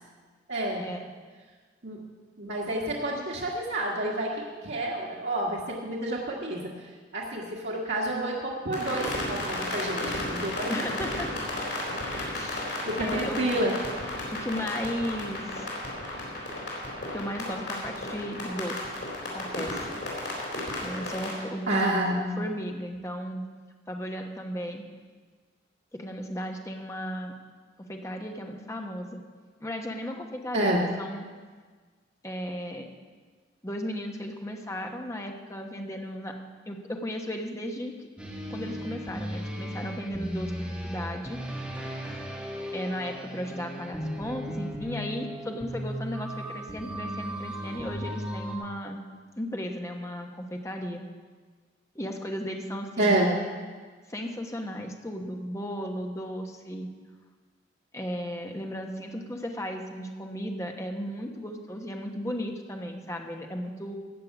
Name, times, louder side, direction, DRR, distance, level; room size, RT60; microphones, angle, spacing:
voice 1, 0.5-0.9 1.8-2.0 2.4-6.7 7.1-10.7 12.8-13.7 21.7-22.5 30.5-30.9 53.0-53.3, right 1 dB, 85° right, -4 dB, 1.6 m, -29 dB
sound 1, 8.7-21.3, left 1 dB, 85° left, 4.3 m, -34 dB
voice 2, 10.7-11.3 12.1-13.4 14.3-15.7 17.1-18.8 19.3-19.9 20.8-22.0 22.4-23.4 23.9-24.8 25.9-27.3 27.8-29.2 29.6-31.2 32.2-32.9 33.6-36.4 36.7-37.9 38.4-41.4 42.7-49.0 49.4-51.0 51.9-53.2 54.1-56.9 57.9-64.0, equal, 15° left, 3 dB, 1.1 m, -35 dB
sound 2, 38.2-48.6, equal, 5° right, 1.8 m, -36 dB
15.0 x 5.7 x 8.4 m, 1.5 s
head